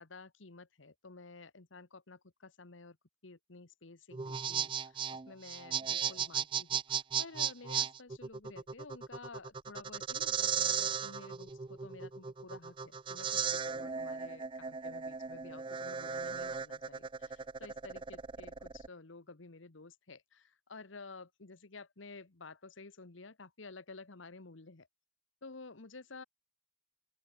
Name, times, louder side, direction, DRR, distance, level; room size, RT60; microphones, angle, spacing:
voice 1, 0.0-3.0 3.2-24.9 25.4-26.2, left 3 dB, 80° left, 1.3 m, -52 dB
sound 1, 4.1-18.9, right 7 dB, 25° right, 0.4 m, -36 dB
open air
head